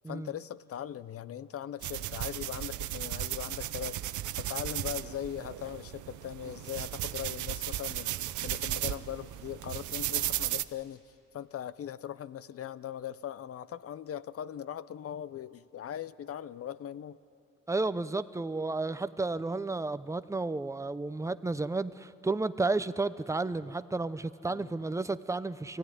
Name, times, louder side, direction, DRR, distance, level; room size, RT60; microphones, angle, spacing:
voice 1, 0.1-11.0 11.3-17.2 24.5-24.7, left 10 dB, 50° left, 17 dB, 0.6 m, -40 dB
sound 1, 1.8-10.6, right 14 dB, 75° right, 0.7 m, -35 dB
voice 2, 17.7-25.8, right 3 dB, 10° right, 13 dB, 0.6 m, -32 dB
24.0 x 15.5 x 9.7 m, 2.8 s
cardioid pair, 90°, 30 cm